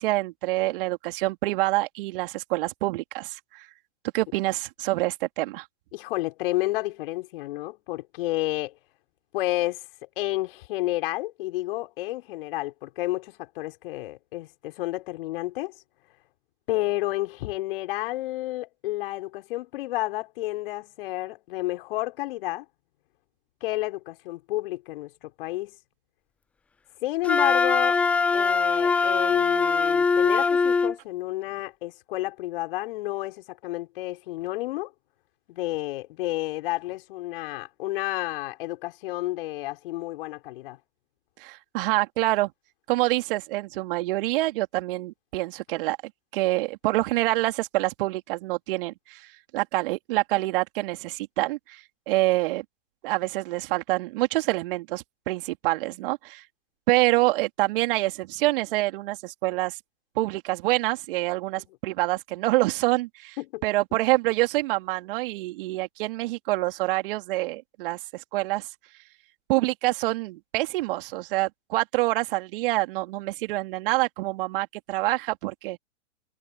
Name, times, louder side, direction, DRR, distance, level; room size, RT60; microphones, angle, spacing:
voice 1, 0.0-3.7 4.1-5.7 41.4-42.5 42.9-46.0 46.3-49.3 49.5-52.6 53.0-56.4 56.9-59.8 60.2-63.4 63.6-68.7 69.5-75.8, right 19 dB, 45° right, 3.7 m, -26 dB
voice 2, 5.9-8.8 9.3-15.7 16.7-22.7 23.6-25.8 27.0-28.0 28.3-34.9 35.5-40.8 63.4-63.6 63.9-64.0, left 17 dB, 50° left, 5.5 m, -31 dB
Wind instrument woodwind instrument, 27.2-31.0, left 4 dB, 5° left, 0.4 m, -22 dB
hypercardioid pair, 115°, 36 cm